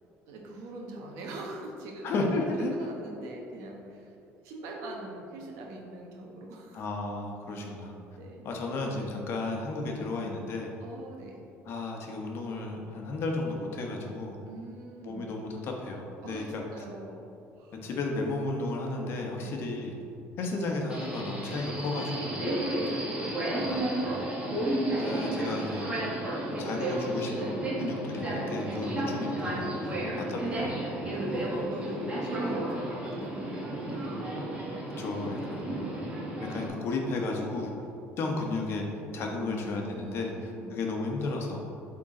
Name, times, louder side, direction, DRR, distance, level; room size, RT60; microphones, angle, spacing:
voice 1, 0.3-2.1 2.5-4.1 4.4-6.8 8.2-8.5 10.8-11.4 14.5-15.3 16.2-17.3 17.6-17.8 19.4-19.6 22.5-24.6 28.9-29.2 29.9-30.3 31.1-34.2 34.9-35.5 39.2-40.8, right 2 dB, 85° right, 0 dB, 1.1 m, -43 dB
voice 2, 2.0-2.7 6.7-8.0 8.4-10.7 11.7-14.4 15.0-16.6 17.8-20.0 20.4-22.5 23.6-23.9 25.0-25.9 26.5-30.8 35.0-35.8 36.5-37.7 38.2-38.9 39.1-41.6, left 2 dB, 55° left, 1 dB, 1.0 m, -33 dB
Subway metro underground, 20.9-36.7, right 1 dB, 20° right, 1.4 m, -32 dB
8.3 x 3.8 x 3.8 m, 2.6 s
cardioid pair, 125°, 5 cm